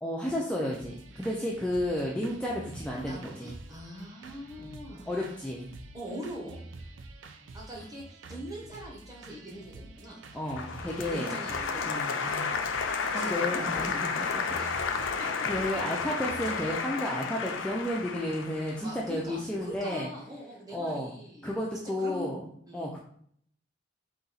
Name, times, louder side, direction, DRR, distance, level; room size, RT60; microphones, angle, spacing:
voice 1, 0.0-3.5 4.6-4.7 5.1-5.7 10.3-11.3 11.8-12.5 13.1-14.4 15.4-20.1 20.7-21.1 21.4-22.4 22.7-23.0, left 1 dB, 5° left, -4 dB, 0.4 m, -32 dB
sound 1, 0.7-16.7, right 2 dB, 75° right, 0.5 m, -48 dB
voice 2, 3.1-5.1 5.9-6.6 7.5-10.2 11.1-11.9 13.2-14.0 14.6-15.3 16.4-16.5 18.8-21.6 22.0-22.9, right 1 dB, 20° right, -3 dB, 1.1 m, -42 dB
Applause, 10.5-19.6, left 5 dB, 80° left, 0.5 m, -32 dB
4.0 x 2.8 x 3.9 m, 0.64 s
head